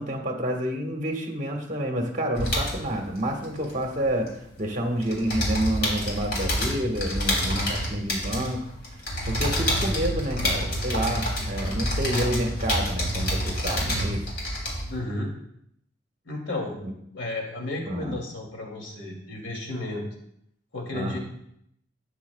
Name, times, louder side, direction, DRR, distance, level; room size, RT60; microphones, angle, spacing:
voice 1, 0.0-8.6 9.2-14.2 16.8-16.9 17.8-18.2 20.9-21.2, right 1 dB, 40° right, 2 dB, 1.6 m, -29 dB
sound 1, 2.3-4.6 4.9-15.0, equal, 55° left, 3.1 m, -28 dB
voice 2, 14.9-15.3 16.2-16.7 17.1-20.0 20.7-21.2, left 2 dB, 85° left, -1 dB, 2.7 m, -32 dB
13.0 x 9.3 x 2.3 m, 0.73 s
head